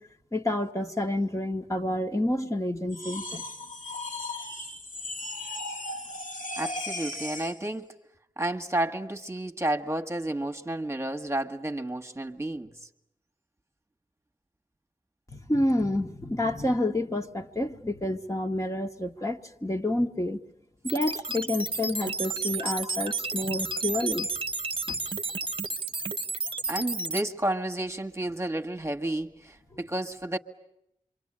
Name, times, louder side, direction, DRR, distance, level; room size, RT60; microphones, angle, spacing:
voice 1, 0.3-3.4 15.3-20.4 20.8-24.3 24.9-25.0, left 1 dB, 25° left, 1.4 m, -29 dB
sound 1, 2.9-7.6, left 2 dB, 75° left, 2.1 m, -36 dB
voice 2, 6.6-7.9 8.4-12.7 26.7-30.4, right 1 dB, 20° right, 1.5 m, -31 dB
sound 2, 20.9-27.2, right 3 dB, 40° right, 1.0 m, -32 dB
27.5 x 24.5 x 8.8 m
wide cardioid pair, 60°, 13 cm